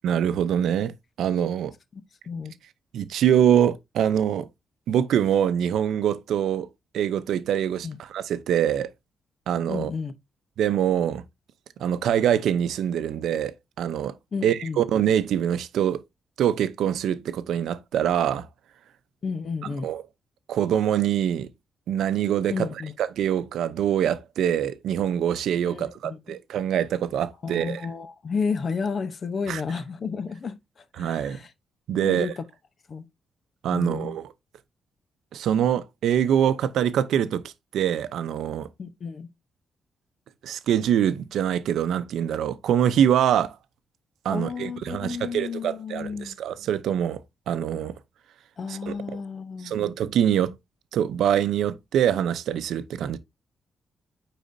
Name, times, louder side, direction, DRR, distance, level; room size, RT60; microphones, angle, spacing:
voice 1, 0.0-0.9 1.2-1.7 2.9-4.5 4.9-6.7 6.9-8.9 9.5-9.9 10.6-11.2 11.8-14.1 14.4-16.0 16.4-18.5 19.8-20.0 20.5-21.5 21.9-22.7 23.0-27.8 29.5-29.6 31.0-31.4 31.9-32.3 33.6-34.3 35.3-37.4 37.7-38.7 40.4-43.5 44.2-47.2 47.5-47.9 48.7-48.9 49.6-50.6 50.9-53.2, right 9 dB, 85° right, 0.6 m, -24 dB
voice 2, 1.9-2.5 7.8-8.0 9.7-10.1 14.3-14.8 19.2-19.9 22.5-22.9 25.6-26.4 27.4-30.6 31.0-31.5 31.9-32.4 32.9-33.1 33.7-34.2 38.8-39.3 44.3-46.4 48.6-49.9, left 5 dB, 45° left, 0.8 m, -32 dB
9.2 x 4.1 x 2.7 m
cardioid pair, 110°, 0 cm